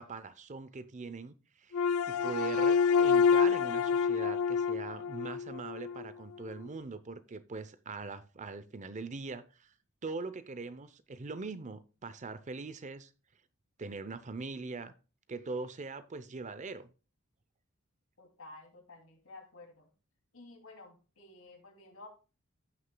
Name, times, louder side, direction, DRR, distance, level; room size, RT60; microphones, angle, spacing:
voice 1, 0.0-1.8 2.1-9.7 10.0-13.1 13.8-14.9 15.3-16.9, right 3 dB, 35° right, 0.6 m, -42 dB
sound 1, 1.7-6.0, left 6 dB, 90° left, 0.4 m, -27 dB
voice 2, 18.2-19.9 20.3-22.1, left 2 dB, 70° left, 2.7 m, -52 dB
15.5 x 6.4 x 2.2 m
head